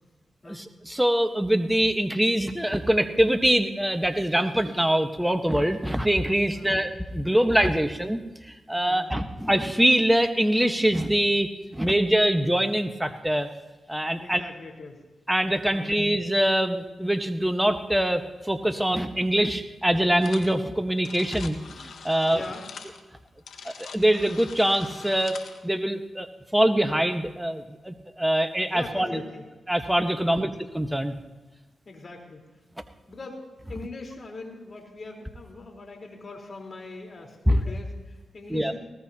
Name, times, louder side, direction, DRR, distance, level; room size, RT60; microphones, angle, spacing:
voice 1, 0.5-13.5 13.9-14.4 15.3-22.4 23.6-25.4 25.6-26.3 26.5-29.2 29.7-31.1 37.5-37.6 38.5-38.7, right 1 dB, 10° right, 7 dB, 1.3 m, -24 dB
voice 2, 6.5-6.9 8.8-9.1 14.2-15.0 15.7-16.0 22.3-22.6 28.7-29.5 30.2-30.5 31.9-32.4 33.1-38.8, left 3 dB, 50° left, 1 dB, 4.1 m, -42 dB
sound 1, 20.2-20.6 20.8-25.6, left 5 dB, 75° left, 1.4 m, -43 dB
20.5 x 18.5 x 2.9 m, 1.2 s
supercardioid pair, 45°, 0 cm